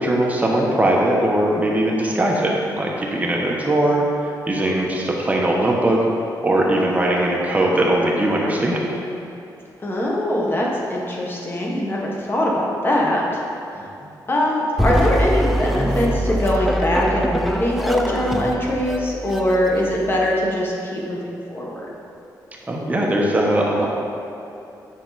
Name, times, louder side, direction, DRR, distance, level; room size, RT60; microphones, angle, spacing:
voice 1, 0.0-6.0 6.4-8.8 13.7-13.8 22.7-23.9, right 1 dB, 20° right, -2 dB, 1.1 m, -20 dB
voice 2, 9.8-13.4 14.3-21.8, left 1 dB, 30° left, -2 dB, 1.5 m, -22 dB
sound 1, 14.8-20.3, equal, ahead, 0.5 m, -23 dB
8.4 x 5.8 x 4.2 m, 2.8 s
cardioid pair, 110°, 8 cm